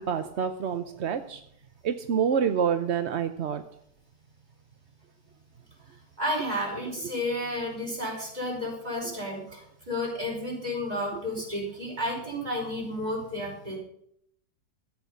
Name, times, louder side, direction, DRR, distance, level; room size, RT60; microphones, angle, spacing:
voice 1, 0.0-1.4 1.8-3.6, right 7 dB, 55° right, 9 dB, 0.7 m, -27 dB
voice 2, 6.2-9.6 9.9-13.8, left 1 dB, 20° right, -1 dB, 5.2 m, -31 dB
13.5 x 8.4 x 6.9 m, 0.71 s
omnidirectional pair, 1.9 m